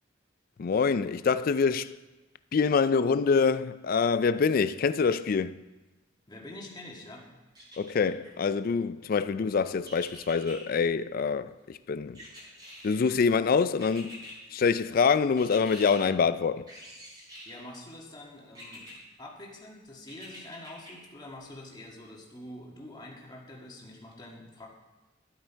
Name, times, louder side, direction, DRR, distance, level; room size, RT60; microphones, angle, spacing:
voice 1, 0.6-1.9 2.5-5.6 7.8-12.2 12.8-16.7, left 5 dB, 50° left, 0.3 m, -25 dB
voice 2, 6.3-7.2 17.4-24.7, left 1 dB, 20° left, 1.6 m, -46 dB
sound 1, 7.5-8.3 9.8-10.6 12.1-13.1 13.8-14.4 15.4-16.0 16.7-17.6 18.5-18.9 20.1-20.9 21.4-21.5, equal, 20° right, 3.4 m, -46 dB
12.0 x 7.8 x 4.5 m
head